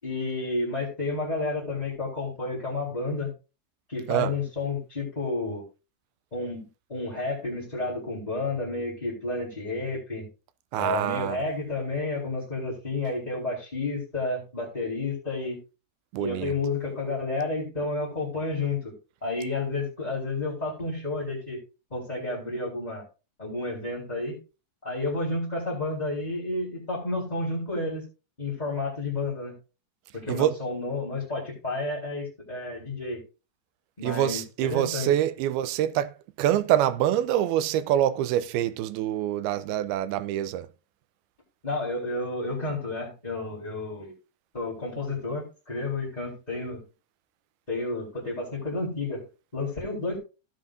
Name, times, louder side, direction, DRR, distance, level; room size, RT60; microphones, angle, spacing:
voice 1, 0.0-3.3 3.9-5.6 6.3-10.3 10.8-15.6 16.2-18.9 19.2-21.6 21.9-23.0 23.4-24.4 24.8-28.0 28.4-29.5 30.1-33.2 34.0-35.1 41.6-44.1 44.5-46.8 47.7-49.2 49.5-50.2, left 2 dB, 10° left, 3.8 m, -31 dB
voice 2, 10.7-11.4 16.1-16.5 30.3-30.6 34.0-36.1 36.4-40.7, right 12 dB, 80° right, 2.6 m, -25 dB
16.5 x 7.8 x 2.6 m
omnidirectional pair, 4.5 m